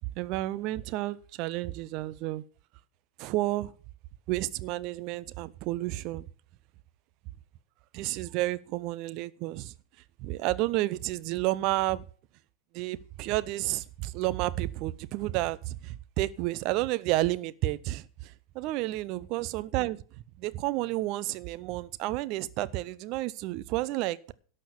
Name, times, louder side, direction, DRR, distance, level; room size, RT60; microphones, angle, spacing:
voice 1, 0.0-2.4 3.2-3.7 4.3-6.3 7.9-9.7 10.2-12.0 12.7-20.0 20.4-24.3, right 17 dB, 40° right, 0.6 m, -31 dB
11.5 x 6.5 x 6.9 m
figure-of-eight pair, 90°, 0 cm